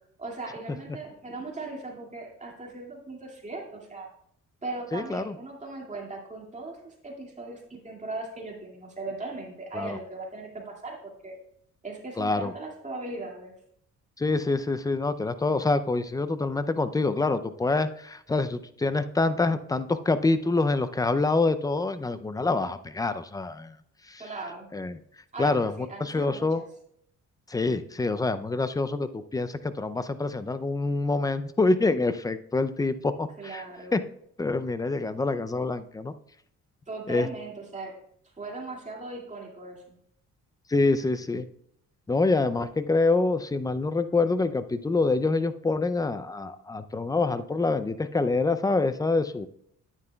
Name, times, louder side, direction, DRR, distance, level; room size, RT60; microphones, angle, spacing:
voice 1, 0.2-4.1 4.6-11.3 11.8-13.5 24.2-24.7 25.3-26.6 33.4-34.0 36.9-37.9 38.4-40.0, right 2 dB, 25° right, -1 dB, 2.2 m, -38 dB
voice 2, 4.9-5.3 9.7-10.0 12.2-12.5 14.2-23.8 24.1-24.2 24.7-25.0 25.4-26.6 27.5-33.6 33.9-34.0 34.4-36.1 37.1-37.3 40.7-41.5 42.1-49.5, left 3 dB, 10° left, 12 dB, 0.4 m, -26 dB
9.8 x 9.4 x 2.3 m, 0.69 s
cardioid pair, 90°, 30 cm